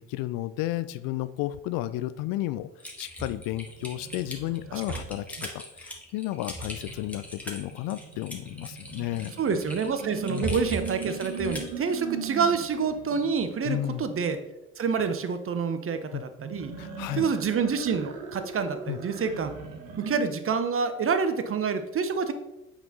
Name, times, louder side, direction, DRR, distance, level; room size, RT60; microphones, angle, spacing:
voice 1, 0.1-2.7 3.0-9.3 10.3-10.6 13.6-14.0 16.1-16.2 16.8-17.3 18.9-19.0, left 15 dB, 55° left, 14 dB, 0.5 m, -32 dB
Typing, 2.8-11.8, equal, 5° left, 1.7 m, -39 dB
sound 1, 3.5-5.4 6.5-13.3 16.4-20.2, right 6 dB, 70° right, 1.2 m, -40 dB
voice 2, 4.7-5.0 9.4-14.4 14.8-16.7 17.2-19.5 20.0-22.3, right 5 dB, 30° right, 10 dB, 0.8 m, -27 dB
8.0 x 4.3 x 4.0 m, 0.95 s
hypercardioid pair, 55°, 41 cm